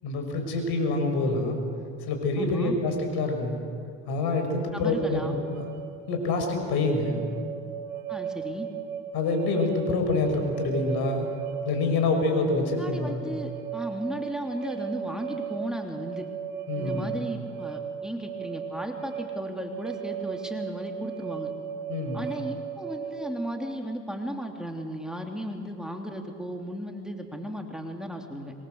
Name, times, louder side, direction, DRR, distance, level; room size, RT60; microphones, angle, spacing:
voice 1, 0.0-1.6 2.0-3.6 4.1-5.2 5.5-5.8 6.1-7.2 9.1-11.3 11.6-13.3 16.7-17.2 21.9-22.2, left 3 dB, 65° left, 4 dB, 6.2 m, -26 dB
voice 2, 2.4-2.8 4.7-5.4 8.1-8.7 12.6-16.3 16.7-21.5 22.1-28.5, equal, ahead, 2 dB, 3.0 m, -35 dB
sound 1, 4.8-23.5, right 8 dB, 50° right, 4.5 m, -36 dB
25.5 x 22.5 x 8.0 m, 2.4 s
supercardioid pair, 85°, 41 cm